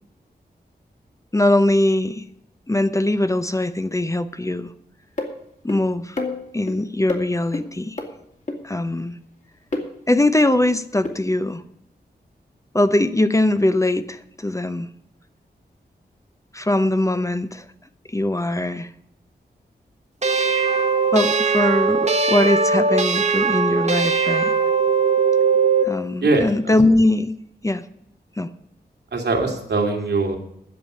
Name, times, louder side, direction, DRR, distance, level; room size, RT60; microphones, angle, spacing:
voice 1, 1.3-2.2 2.7-4.7 5.6-6.2 6.5-8.0 8.6-9.2 10.1-11.6 12.7-14.9 16.5-17.6 18.1-18.9 21.1-24.5 25.8-27.3 27.6-27.8 28.4-28.5, left 1 dB, 20° left, 11 dB, 0.7 m, -21 dB
sound 1, 5.2-5.3 5.7-5.8 6.2-6.7 7.1-7.2 7.5-7.6 8.0-8.1 8.5-8.6 9.7-9.9 11.0-11.1, left 2 dB, 45° left, 2.5 m, -26 dB
sound 2, 20.2-25.9, right 4 dB, 40° right, 1.3 m, -19 dB
voice 2, 26.2-26.7 29.1-30.4, right 3 dB, 80° right, 2 dB, 2.6 m, -21 dB
10.5 x 7.3 x 9.5 m, 0.75 s
wide cardioid pair, 85°, 17 cm